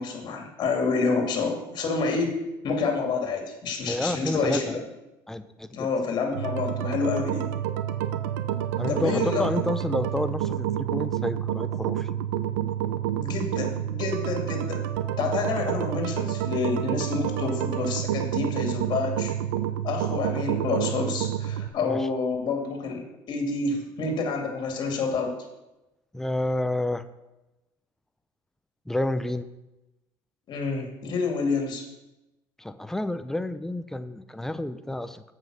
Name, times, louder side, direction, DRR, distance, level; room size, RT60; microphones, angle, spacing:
voice 1, 0.0-4.8 5.7-7.5 8.9-9.5 13.1-14.9 15.2-19.3 19.8-25.3 30.5-31.8, left 4 dB, 50° left, 3 dB, 2.4 m, -28 dB
voice 2, 3.9-4.8 5.3-5.9 8.8-12.1 21.9-22.1 26.1-27.0 28.9-29.5 32.6-35.3, left 1 dB, 5° left, 12 dB, 0.6 m, -30 dB
sound 1, 6.3-21.7, right 11 dB, 85° right, 0.6 m, -29 dB
7.8 x 5.6 x 6.2 m, 0.98 s
supercardioid pair, 90°, 10 cm